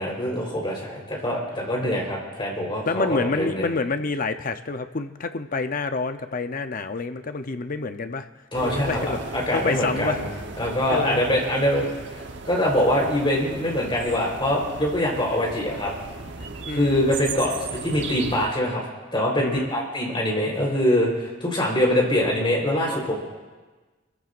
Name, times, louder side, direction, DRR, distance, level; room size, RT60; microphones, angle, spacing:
voice 1, 0.0-3.7 8.5-10.3 10.6-11.9 12.4-15.9 16.7-17.5 17.8-18.8 19.1-23.1, left 1 dB, 25° left, -2 dB, 4.0 m, -24 dB
voice 2, 2.9-8.3 8.6-9.2 9.5-10.2 10.9-11.2 16.7-17.1 19.4-19.7, left 3 dB, 45° left, 9 dB, 0.7 m, -28 dB
sound 1, 8.5-18.5, right 3 dB, 65° right, 1.1 m, -36 dB
28.0 x 15.0 x 2.5 m, 1.3 s
head